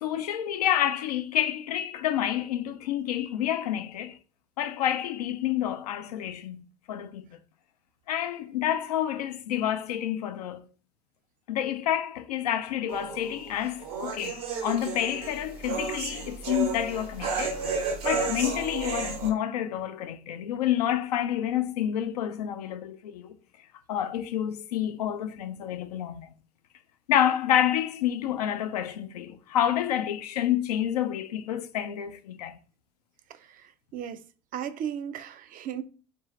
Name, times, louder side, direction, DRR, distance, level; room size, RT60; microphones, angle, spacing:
voice 1, 0.0-4.2 4.6-7.4 8.1-10.7 11.5-23.4 23.9-26.3 27.1-32.6, left 11 dB, 85° left, 0.4 m, -29 dB
sound 1, 12.9-19.3, right 5 dB, 80° right, 1.0 m, -32 dB
voice 2, 33.3-34.2 34.5-35.8, right 9 dB, 45° right, 0.4 m, -36 dB
3.8 x 2.5 x 3.1 m
hypercardioid pair, 70°, 19 cm